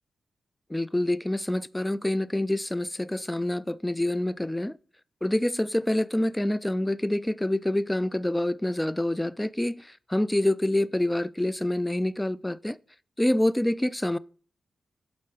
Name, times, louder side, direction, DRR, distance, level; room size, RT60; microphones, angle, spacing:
voice 1, 0.7-4.8 5.2-12.8 13.2-14.2, left 1 dB, 10° left, 0.3 m, -26 dB
7.6 x 4.1 x 4.9 m
supercardioid pair, 50°, 0 cm